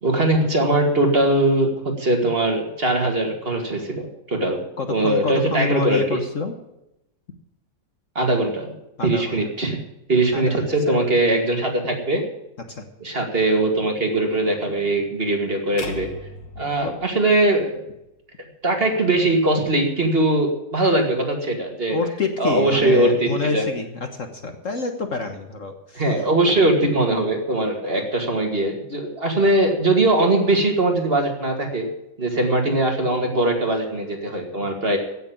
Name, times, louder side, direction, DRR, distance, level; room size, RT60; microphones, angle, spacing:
voice 1, 0.0-4.6 4.9-6.2 8.2-8.8 9.0-9.8 10.1-12.2 13.0-16.1 16.6-17.8 18.6-22.0 22.4-23.6 26.0-31.9 32.2-35.0, right 2 dB, 35° right, 2 dB, 2.4 m, -21 dB
voice 2, 4.8-6.6 9.0-9.4 10.3-11.0 12.7-12.8 16.8-17.0 21.9-26.1, left 4 dB, 50° left, 6 dB, 1.5 m, -28 dB
sound 1, 15.8-18.0, left 3 dB, 80° left, 2.4 m, -38 dB
16.0 x 6.8 x 8.7 m, 0.88 s
omnidirectional pair, 1.9 m